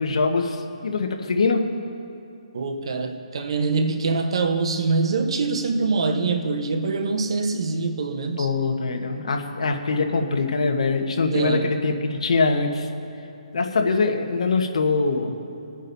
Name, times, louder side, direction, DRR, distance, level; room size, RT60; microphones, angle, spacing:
voice 1, 0.0-1.7 8.4-12.9 13.5-15.3, left 4 dB, 65° left, 3 dB, 1.2 m, -23 dB
voice 2, 2.5-8.5 11.2-11.7, right 4 dB, 50° right, 7 dB, 0.9 m, -24 dB
25.0 x 9.0 x 2.7 m, 2.7 s
hypercardioid pair, 175°, 4 cm